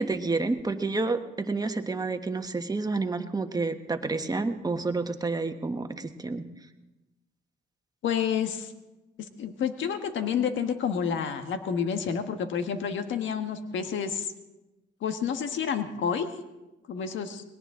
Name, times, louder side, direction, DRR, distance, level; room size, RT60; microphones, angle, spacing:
voice 1, 0.0-6.4, right 3 dB, 20° right, 7 dB, 1.3 m, -29 dB
voice 2, 8.0-8.7 9.4-14.3 15.0-16.3 16.9-17.4, left 7 dB, 75° left, 7 dB, 1.5 m, -29 dB
21.0 x 18.0 x 3.8 m, 1.0 s
cardioid pair, 90°, 20 cm